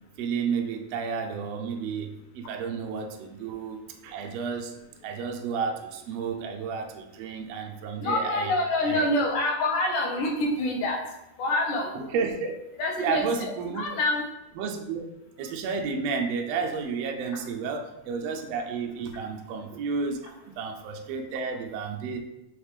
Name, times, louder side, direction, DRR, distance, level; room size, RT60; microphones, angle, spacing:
voice 1, 0.2-4.8 5.0-8.5 8.8-9.1 11.9-12.6 13.0-13.9 14.6-15.1 15.4-22.2, right 5 dB, 75° right, 3 dB, 1.5 m, -31 dB
voice 2, 8.0-11.0 11.4-11.9 12.8-13.2 13.8-14.2, left 2 dB, 85° left, 1 dB, 2.6 m, -26 dB
5.7 x 3.5 x 4.8 m, 0.91 s
omnidirectional pair, 3.6 m